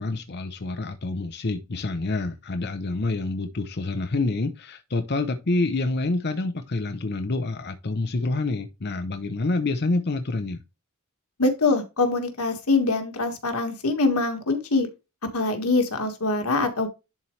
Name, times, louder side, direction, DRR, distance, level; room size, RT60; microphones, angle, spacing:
voice 1, 0.0-10.6, left 2 dB, 50° left, 0.8 m, -27 dB
voice 2, 11.4-14.9 15.3-16.9, left 3 dB, 90° left, 1.8 m, -23 dB
11.0 x 4.3 x 3.2 m
head